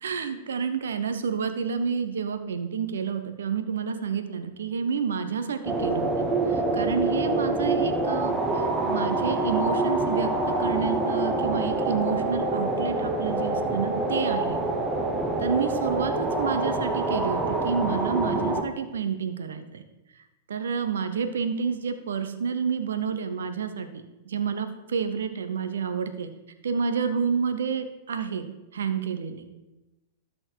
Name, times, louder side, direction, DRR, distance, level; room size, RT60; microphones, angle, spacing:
voice 1, 0.0-14.6 15.4-19.8 20.5-26.3 26.6-28.5 28.7-29.5, right 6 dB, 90° right, 9 dB, 0.8 m, -29 dB
sound 1, 5.6-18.6, right 2 dB, 15° right, 1.2 m, -26 dB
12.5 x 4.4 x 4.6 m, 1.0 s
hypercardioid pair, 125°, 0 cm